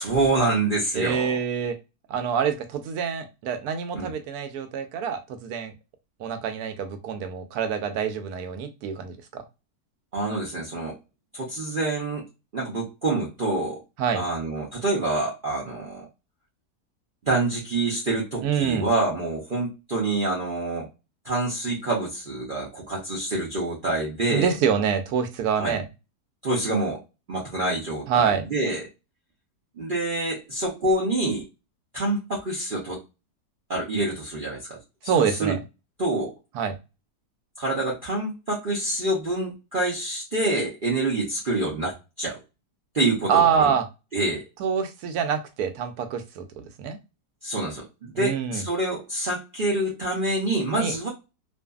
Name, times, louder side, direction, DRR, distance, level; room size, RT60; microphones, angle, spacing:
voice 1, 0.0-1.4 3.9-4.1 10.1-11.0 11.3-12.3 12.5-13.8 14.1-16.1 17.2-20.9 21.2-24.5 25.6-25.8 26.4-27.0 27.3-28.9 29.8-31.5 31.9-33.0 33.7-35.5 36.0-36.3 37.6-42.4 42.9-43.7 44.1-44.4 47.4-51.1, right 2 dB, 55° right, -4 dB, 0.6 m, -26 dB
voice 2, 0.9-1.8 2.1-5.7 6.2-9.4 14.0-14.2 18.4-18.9 24.3-25.9 28.1-28.4 35.0-35.6 36.5-36.8 43.3-43.9 44.6-47.0 48.2-48.6 50.8-50.9, right 7 dB, 75° right, 7 dB, 1.0 m, -26 dB
2.6 x 2.5 x 2.3 m, 0.26 s
omnidirectional pair, 1.8 m